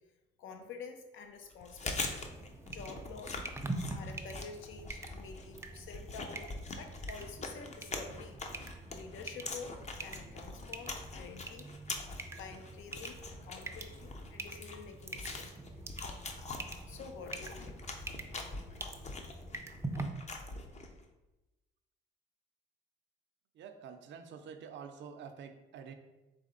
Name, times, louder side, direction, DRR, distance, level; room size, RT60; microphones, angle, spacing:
voice 1, 0.4-2.3 2.7-3.6 3.9-8.4 8.9-11.7 12.3-15.5 16.9-17.9, left 5 dB, 80° left, 5 dB, 0.7 m, -49 dB
Chewing mastication, 1.5-21.0, left 3 dB, 35° left, 0.6 m, -44 dB
sound 1, 1.9-20.0, right 2 dB, 15° right, 0.4 m, -45 dB
voice 2, 23.5-25.9, right 6 dB, 65° right, 6 dB, 0.5 m, -48 dB
4.1 x 3.3 x 3.8 m, 1.1 s
cardioid pair, 90°, 20 cm